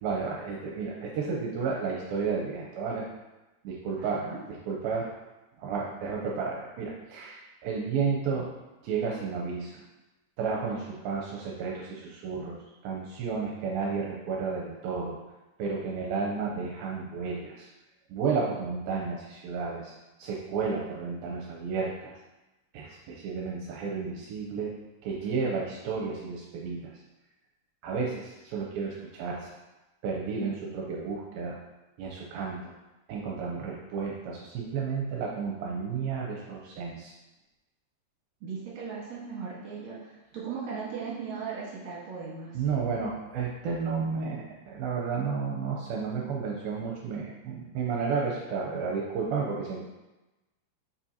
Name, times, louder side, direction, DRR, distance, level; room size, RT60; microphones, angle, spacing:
voice 1, 0.0-3.1 3.6-4.2 4.5-5.1 5.6-8.5 8.8-9.8 10.4-12.6 12.8-15.2 15.6-17.7 18.1-19.9 20.2-22.1 22.7-24.7 25.0-26.9 27.8-29.5 30.0-31.6 32.0-32.7 33.1-37.1 42.5-49.8, right 5 dB, 75° right, -2 dB, 2.3 m, -32 dB
voice 2, 4.0-4.4 38.4-42.6, right 5 dB, 60° right, -5 dB, 2.1 m, -38 dB
7.3 x 5.6 x 2.8 m, 1.0 s
omnidirectional pair, 4.7 m